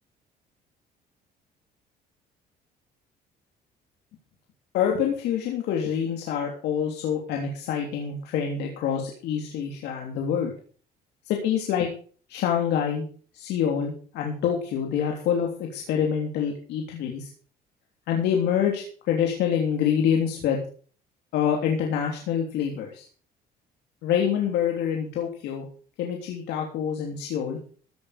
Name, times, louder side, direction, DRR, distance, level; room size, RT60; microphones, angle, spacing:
voice 1, 4.7-10.5 11.3-11.9 12.3-13.0 13.3-17.3 18.1-20.6 21.3-23.1 24.0-25.6 26.0-27.6, left 8 dB, 80° left, 1 dB, 3.2 m, -26 dB
15.5 x 9.3 x 5.0 m, 0.43 s
cardioid pair, 110°, 17 cm